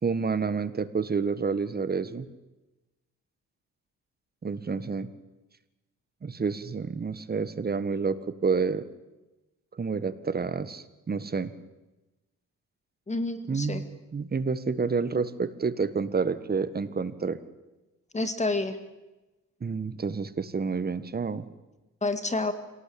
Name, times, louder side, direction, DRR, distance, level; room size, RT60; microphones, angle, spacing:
voice 1, 0.0-2.3 4.4-5.1 6.2-8.8 9.8-11.5 13.5-13.9 14.1-17.4 19.6-21.5, right 5 dB, 30° right, 13 dB, 1.7 m, -29 dB
voice 2, 13.1-13.8 18.1-18.8 22.0-22.5, left 2 dB, 20° left, 10 dB, 2.2 m, -28 dB
27.0 x 18.0 x 8.8 m, 1.1 s
cardioid pair, 95°, 33 cm